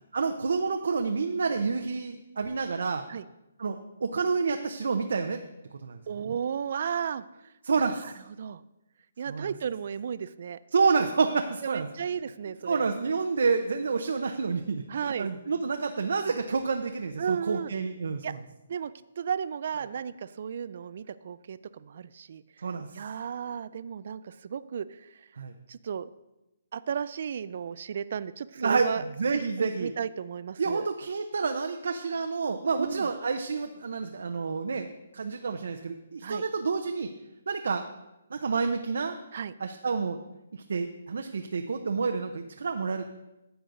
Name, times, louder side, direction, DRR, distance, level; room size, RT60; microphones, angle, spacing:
voice 1, 0.1-3.0 3.6-5.4 5.8-6.0 7.6-8.1 9.3-9.5 10.7-11.9 12.7-18.4 22.6-22.9 25.4-25.5 28.6-28.9 29.2-29.9 30.6-34.9 35.1-37.1 37.5-37.8 38.3-39.2 39.6-40.2 40.5-43.0, right 4 dB, 70° right, 5 dB, 0.7 m, -29 dB
voice 2, 6.1-7.5 7.8-8.1 8.4-8.6 9.2-10.6 11.6-12.9 14.9-15.3 17.2-17.7 18.2-18.3 18.7-22.4 22.9-25.3 25.7-26.1 26.7-29.0 29.3-30.9 32.8-33.1 36.2-36.4 39.3-39.5, right 7 dB, 45° right, 15 dB, 0.3 m, -34 dB
12.5 x 8.0 x 3.9 m, 0.94 s
hypercardioid pair, 170°, 0 cm